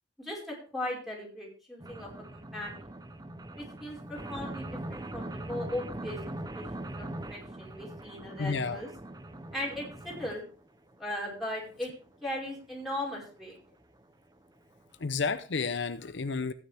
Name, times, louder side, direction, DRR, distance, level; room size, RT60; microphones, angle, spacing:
voice 1, 0.2-2.8 3.6-6.2 6.5-8.9 9.5-10.4 11.0-11.9 12.2-13.6, left 1 dB, ahead, -3 dB, 5.1 m, -38 dB
sound 1, 1.8-10.3 10.9-11.0 11.3-11.4 11.7-11.8 12.1-12.2 12.5-12.6 13.2-13.3 13.6-13.7 14.0-14.1 14.4-14.5 14.8-14.9, right 1 dB, 20° right, 0.8 m, -41 dB
voice 2, 8.4-8.8 15.0-16.5, left 4 dB, 65° left, 11 dB, 0.7 m, -31 dB
15.5 x 9.7 x 3.5 m, 0.39 s
head